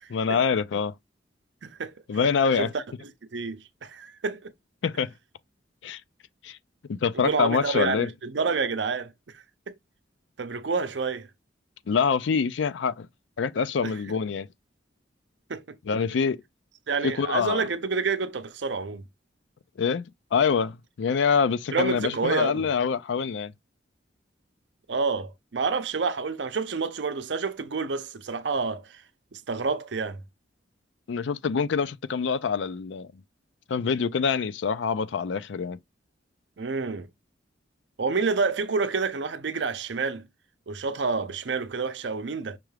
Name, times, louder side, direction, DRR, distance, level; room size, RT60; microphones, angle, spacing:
voice 1, 0.1-0.9 2.1-2.7 4.8-5.1 5.8-6.0 6.4-6.6 6.9-8.1 11.9-13.1 13.4-14.5 15.9-16.4 17.0-17.6 19.8-23.5 31.1-33.1 33.7-35.8, left 6 dB, 80° left, 0.4 m, -25 dB
voice 2, 1.6-1.9 2.6-2.8 3.3-4.5 7.1-9.7 10.4-11.3 13.8-13.9 15.5-15.8 16.9-19.1 21.7-22.7 24.9-29.0 29.3-30.2 36.6-37.1 38.0-40.3 40.7-42.6, right 4 dB, 70° right, 0.6 m, -28 dB
5.9 x 2.3 x 3.2 m
head